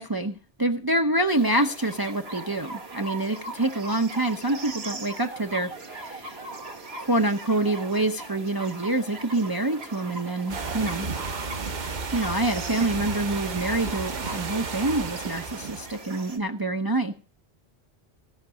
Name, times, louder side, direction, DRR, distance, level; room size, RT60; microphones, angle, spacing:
voice 1, 0.0-6.3 7.0-11.1 12.1-17.1, right 2 dB, 25° right, 6 dB, 0.6 m, -26 dB
sound 1, 1.3-16.4, right 3 dB, 65° right, 1.8 m, -40 dB
sound 2, 10.5-16.1, right 4 dB, 45° right, 0.9 m, -33 dB
16.0 x 5.8 x 6.2 m, 0.38 s
omnidirectional pair, 1.2 m